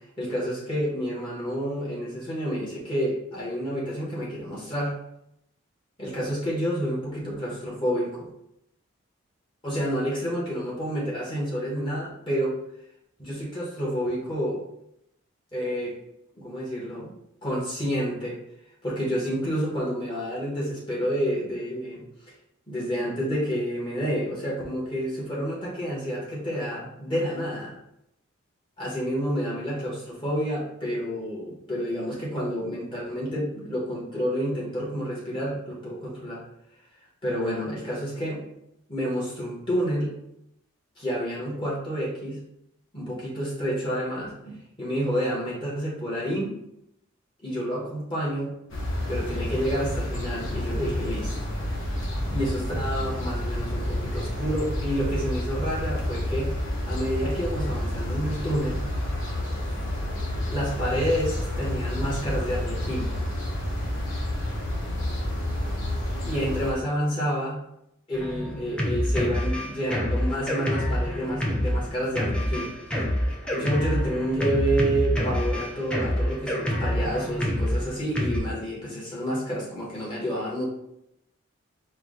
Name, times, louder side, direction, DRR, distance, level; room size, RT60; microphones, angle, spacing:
voice 1, 0.2-5.0 6.0-8.3 9.6-12.6 13.2-14.6 15.5-16.0 16.3-17.1 17.4-18.4 18.8-22.1 22.7-27.8 28.8-36.4 37.2-38.4 38.9-40.1 41.0-42.4 42.9-46.6 47.4-48.5 49.1-51.3 52.3-56.5 56.8-58.8 60.5-63.1 66.3-67.6 68.1-72.7 73.4-80.7, equal, 25° left, -6 dB, 1.2 m, -29 dB
sound 1, 48.7-66.7, left 1 dB, 75° left, 1.0 m, -29 dB
Drum kit, 68.1-78.4, equal, 5° left, 0.5 m, -27 dB
4.6 x 2.3 x 3.7 m, 0.79 s
head